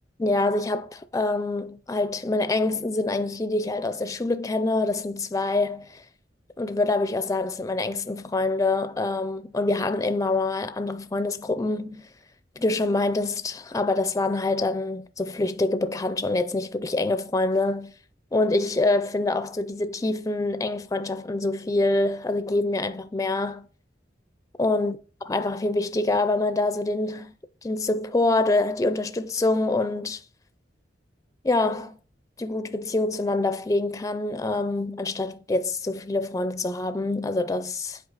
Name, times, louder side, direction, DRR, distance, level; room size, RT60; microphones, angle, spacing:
voice 1, 0.2-6.0 6.6-12.1 12.6-17.9 18.3-23.7 24.6-25.0 25.3-27.3 27.6-30.2 31.4-32.0 32.4-38.0, left 2 dB, 20° left, 0.4 m, -25 dB
7.8 x 4.6 x 3.9 m
head